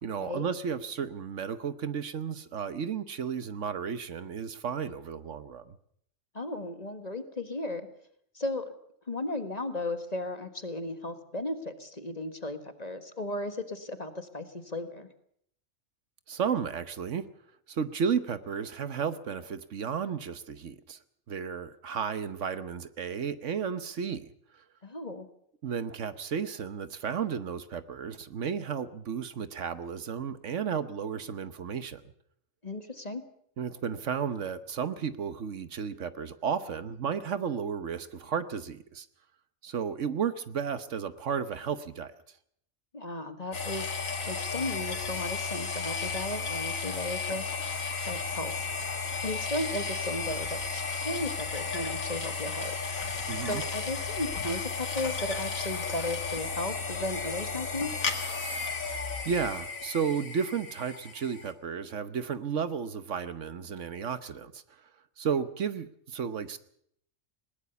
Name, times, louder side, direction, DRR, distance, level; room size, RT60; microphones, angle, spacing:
voice 1, 0.0-5.8 16.3-17.2 17.7-21.0 21.3-24.3 25.6-32.0 33.6-39.1 39.6-42.1 53.3-53.6 58.8-58.9 59.2-64.6 65.2-66.6, right 7 dB, 65° right, 13 dB, 1.3 m, -33 dB
voice 2, 6.3-7.9 8.3-8.6 9.1-15.1 24.8-25.3 32.6-33.2 42.9-43.9 44.2-47.8 48.1-48.7 49.2-52.8 53.4-57.9, left 1 dB, 30° left, 9 dB, 1.6 m, -35 dB
sound 1, 43.5-61.5, left 4 dB, 90° left, 2.6 m, -34 dB
20.5 x 19.0 x 6.9 m, 0.68 s
omnidirectional pair, 1.4 m